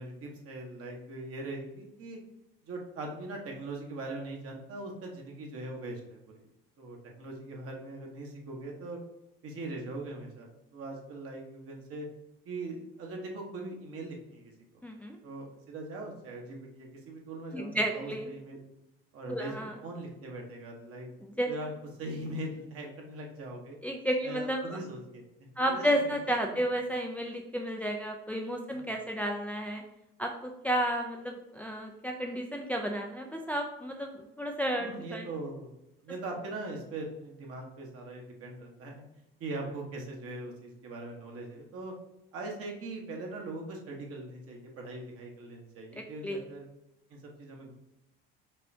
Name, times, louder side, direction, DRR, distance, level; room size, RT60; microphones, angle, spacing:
voice 1, 0.0-2.2 2.6-6.5 6.8-9.0 9.4-12.1 12.4-14.8 15.2-18.7 19.1-21.1 21.5-21.7 22.0-23.8 24.2-26.1 26.4-26.6 28.7-28.9 34.8-35.7 36.0-39.0 39.4-41.9 42.3-46.6 47.1-47.7, right 2 dB, 50° right, 0 dB, 1.4 m, -41 dB
voice 2, 14.8-15.2 17.5-18.3 19.3-19.7 21.2-21.5 23.8-24.8 25.6-29.8 30.2-35.3 46.2-46.4, equal, 5° left, 1 dB, 0.5 m, -32 dB
5.4 x 3.1 x 2.8 m, 0.89 s
hypercardioid pair, 80°, 30 cm